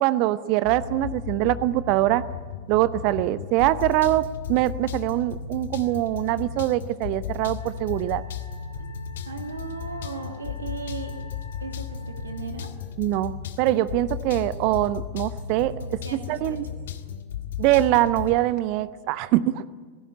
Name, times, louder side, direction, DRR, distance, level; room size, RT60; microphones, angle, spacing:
voice 1, 0.0-2.2 2.7-8.2 13.0-16.0 16.3-16.6 17.6-19.6, right 15 dB, 45° right, 16 dB, 0.8 m, -23 dB
sound 1, 0.6-18.4, left 7 dB, 60° left, 1.6 m, -35 dB
Wind instrument woodwind instrument, 7.6-12.5, left 3 dB, 75° left, 3.2 m, -50 dB
voice 2, 9.3-11.2 11.6-12.7 15.8-16.6, right 5 dB, 70° right, 5 dB, 2.4 m, -37 dB
27.0 x 17.0 x 8.7 m, 1.5 s
figure-of-eight pair, 90°, 0 cm